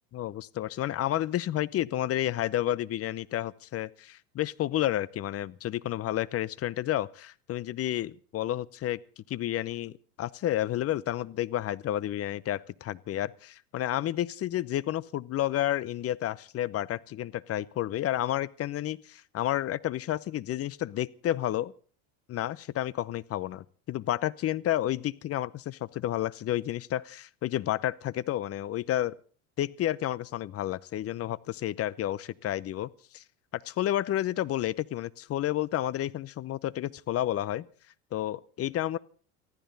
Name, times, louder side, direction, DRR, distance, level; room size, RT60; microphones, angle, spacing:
voice 1, 0.1-9.0 9.3-21.7 22.3-29.1 29.6-32.9 33.1-33.2 33.5-37.7 38.1-39.0, left 13 dB, 30° left, 19 dB, 0.8 m, -31 dB
23.5 x 15.0 x 4.1 m, 0.42 s
hypercardioid pair, 100°, 44 cm